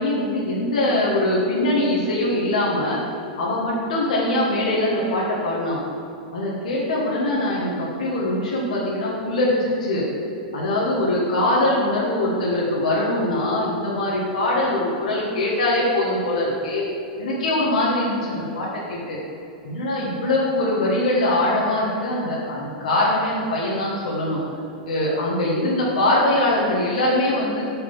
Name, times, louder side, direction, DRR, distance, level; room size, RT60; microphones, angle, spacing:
voice 1, 0.0-3.0 3.4-5.8 6.3-10.0 10.5-16.8 17.2-19.2 19.6-24.4 24.8-27.6, left 1 dB, 80° left, -5 dB, 1.5 m, -22 dB
6.5 x 5.8 x 5.6 m, 2.8 s
hypercardioid pair, 115°, 4 cm